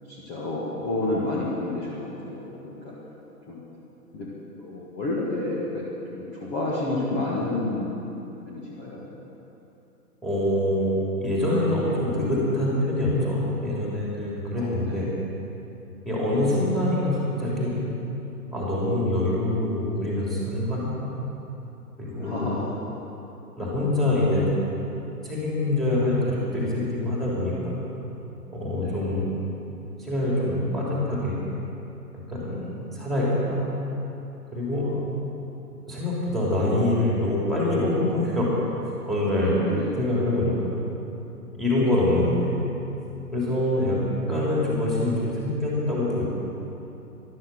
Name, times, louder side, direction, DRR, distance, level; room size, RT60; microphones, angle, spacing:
voice 1, 0.1-2.9 3.5-3.6 4.1-4.3 4.6-5.9 6.1-8.0 8.5-9.0 14.5-15.1 22.1-22.6 28.7-29.1 34.8-35.0 39.6-40.0 43.7-44.1, left 2 dB, 20° left, -6 dB, 1.9 m, -30 dB
voice 2, 10.2-10.9 11.2-15.1 16.0-17.8 18.5-21.1 22.0-22.5 23.6-24.5 25.2-27.8 28.5-29.3 30.0-31.4 32.1-33.6 34.5-34.9 35.9-38.5 39.0-39.6 40.0-40.7 41.5-42.6 43.3-44.0 44.3-46.2, left 1 dB, ahead, -6 dB, 3.3 m, -25 dB
14.0 x 12.5 x 7.8 m, 3.0 s
figure-of-eight pair, 130°, 48 cm